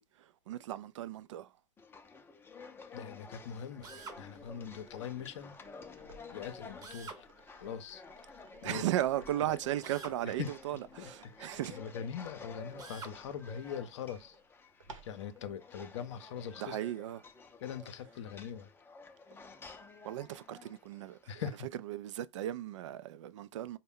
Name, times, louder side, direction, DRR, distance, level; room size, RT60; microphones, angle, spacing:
voice 1, 0.0-1.5 8.6-11.8 16.6-17.2 20.0-21.5 21.8-23.8, right 13 dB, 70° right, 0.4 m, -36 dB
sound 1, 1.8-21.4, left 4 dB, 15° left, 0.5 m, -52 dB
voice 2, 2.9-5.6 6.3-7.3 7.6-8.0 8.3-8.9 10.2-10.5 11.0-11.1 11.4-14.4 15.0-16.8 17.6-18.7 21.3-21.6, left 8 dB, 65° left, 0.6 m, -42 dB
Drill, 3.8-4.2 6.8-7.2 9.8-10.2 12.8-13.2, right 4 dB, 25° right, 0.8 m, -46 dB
sound 2, 3.8-15.5 17.1-17.2, right 3 dB, 90° right, 0.8 m, -60 dB
4.2 x 2.2 x 3.6 m
hypercardioid pair, 95°, 16 cm